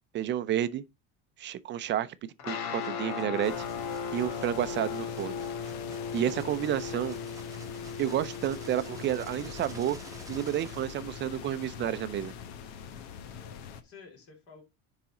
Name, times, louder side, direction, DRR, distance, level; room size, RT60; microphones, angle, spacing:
voice 1, 0.1-0.8 1.4-2.1 2.4-3.7 4.1-5.4 6.1-7.2 8.0-10.0 10.3-12.3, right 11 dB, 35° right, 0.5 m, -30 dB
sound 1, 2.4-12.9, left 6 dB, 70° left, 1.9 m, -38 dB
sound 2, 2.7-11.4, right 3 dB, 10° right, 1.0 m, -52 dB
sound 3, 3.4-13.8, left 8 dB, 90° left, 1.4 m, -44 dB
voice 2, 13.1-14.6, left 4 dB, 45° left, 3.3 m, -53 dB
10.5 x 4.1 x 3.8 m
cardioid pair, 145°, 31 cm